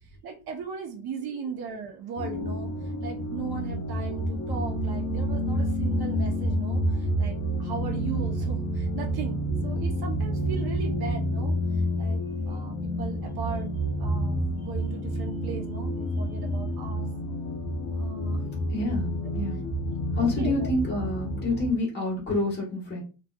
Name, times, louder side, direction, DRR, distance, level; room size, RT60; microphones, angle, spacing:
voice 1, 0.2-2.7 3.0-11.6 12.0-13.7 14.0-17.1 17.9-18.4 20.4-20.7, right 6 dB, 85° right, 1 dB, 0.9 m, -38 dB
sound 1, 2.2-21.7, equal, 45° left, 0.7 m, -29 dB
voice 2, 18.7-19.6 20.1-23.0, left 2 dB, 30° left, -5 dB, 1.3 m, -28 dB
3.1 x 2.7 x 2.3 m, 0.33 s
wide cardioid pair, 170°, 36 cm